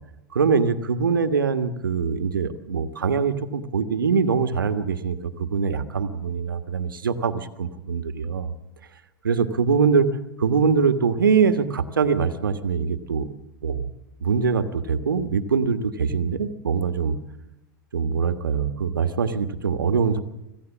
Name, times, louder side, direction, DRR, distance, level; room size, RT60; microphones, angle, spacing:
voice 1, 0.3-8.5 9.2-10.1 10.4-13.3 13.6-13.9 14.2-17.2 17.9-20.2, right 5 dB, 85° right, 9 dB, 1.5 m, -23 dB
25.0 x 16.0 x 7.3 m, 0.92 s
hypercardioid pair, 100°, 11 cm